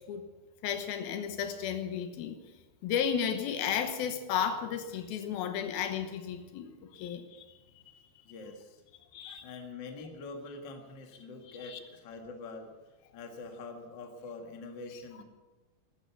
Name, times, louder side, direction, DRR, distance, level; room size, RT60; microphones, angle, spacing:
voice 1, 0.6-2.4 2.8-7.5 9.1-9.5 11.6-11.8, left 8 dB, 75° left, 8 dB, 2.8 m, -33 dB
voice 2, 8.2-8.8 9.4-12.7 13.1-15.2, left 3 dB, 45° left, 3 dB, 1.6 m, -44 dB
14.0 x 13.0 x 7.0 m, 1.3 s
omnidirectional pair, 4.5 m